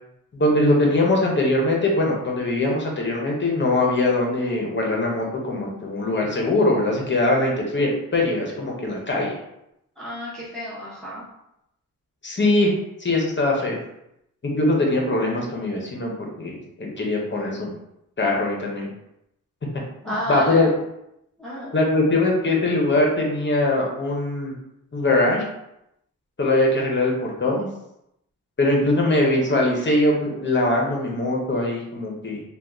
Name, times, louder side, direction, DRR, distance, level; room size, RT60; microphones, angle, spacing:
voice 1, 0.3-9.4 12.2-12.7 13.0-13.8 14.4-16.1 16.4-17.7 18.2-18.9 20.0-20.7 21.7-24.5 24.9-25.4 26.4-27.7 28.6-32.4, left 2 dB, 35° left, -1 dB, 0.8 m, -21 dB
voice 2, 10.0-11.2 20.0-20.7 21.4-21.7, equal, ahead, -8 dB, 0.9 m, -31 dB
2.7 x 2.3 x 3.5 m, 0.82 s
wide cardioid pair, 110°, 33 cm